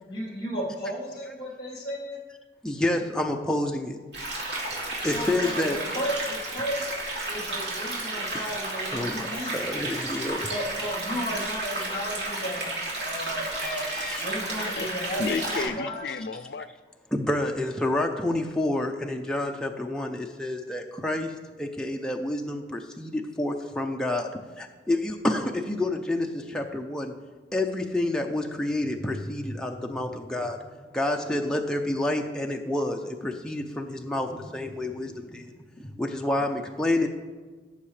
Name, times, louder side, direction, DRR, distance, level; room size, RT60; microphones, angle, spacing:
voice 1, 0.1-2.2 5.0-6.9 7.3-9.7 10.5-12.7 13.0-13.9 14.1-15.2 15.8-16.0 29.7-29.9 34.2-34.4 34.8-35.1, equal, 30° left, -2 dB, 3.1 m, -34 dB
voice 2, 2.6-4.0 5.0-5.8 8.3-8.6 8.9-10.5 13.5-14.2 17.1-21.3 21.6-24.3 24.6-27.1 27.5-30.6 30.9-34.3 34.5-35.5 36.0-37.1, left 1 dB, 5° left, 1 dB, 0.5 m, -29 dB
sound 1, 4.1-15.7, right 2 dB, 80° right, 2.8 m, -32 dB
voice 3, 14.7-16.7, left 4 dB, 65° left, 13 dB, 0.5 m, -32 dB
17.0 x 7.1 x 3.3 m, 1.4 s
head